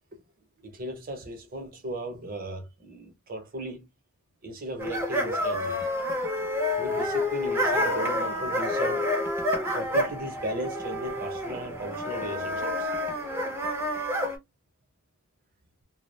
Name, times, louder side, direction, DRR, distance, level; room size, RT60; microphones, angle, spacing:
voice 1, 0.6-3.9 4.4-5.8 6.7-9.0 9.7-12.9, right 1 dB, 40° right, 0.8 m, -37 dB
sound 1, 4.8-14.4, left 1 dB, 10° right, 0.5 m, -28 dB
2.2 x 2.0 x 3.1 m
head